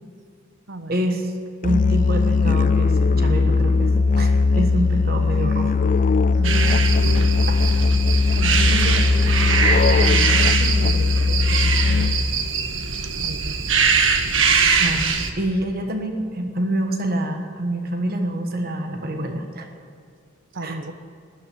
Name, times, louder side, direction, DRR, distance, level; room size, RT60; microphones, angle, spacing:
voice 1, 0.9-1.3 1.6-5.8 7.5-7.6 8.7-9.1 14.8-19.7 20.6-20.8, right 1 dB, 50° right, 4 dB, 1.3 m, -26 dB
Musical instrument, 1.6-12.4, left 3 dB, 40° left, 0.3 m, -19 dB
voice 2, 6.4-6.9 8.4-9.0 9.4-12.1 13.0-13.6 20.5-20.9, right 2 dB, 70° right, 9 dB, 1.0 m, -34 dB
sound 1, 6.4-15.3, right 5 dB, 90° right, 1.5 m, -22 dB
13.0 x 11.0 x 8.5 m, 2.3 s
head